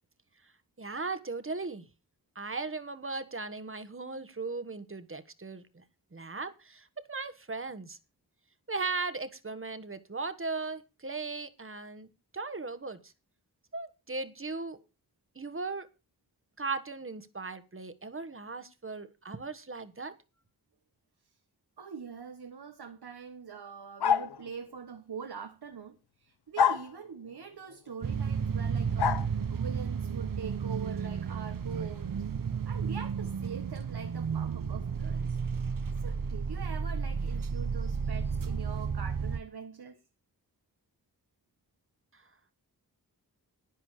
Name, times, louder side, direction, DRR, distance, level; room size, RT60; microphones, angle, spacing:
voice 1, 0.8-1.8 2.3-5.8 6.1-8.0 8.7-13.0 13.7-14.8 15.3-15.9 16.6-20.1, right 3 dB, 35° right, 1.4 m, -37 dB
voice 2, 21.8-32.2 32.6-35.4 36.0-40.0, right 6 dB, 80° right, 1.3 m, -43 dB
sound 1, 24.0-24.4 26.6-26.9 29.0-29.2, left 8 dB, 85° left, 0.8 m, -25 dB
sound 2, 28.0-39.4, right 6 dB, 60° right, 0.9 m, -32 dB
11.5 x 10.5 x 4.9 m
wide cardioid pair, 70°, 38 cm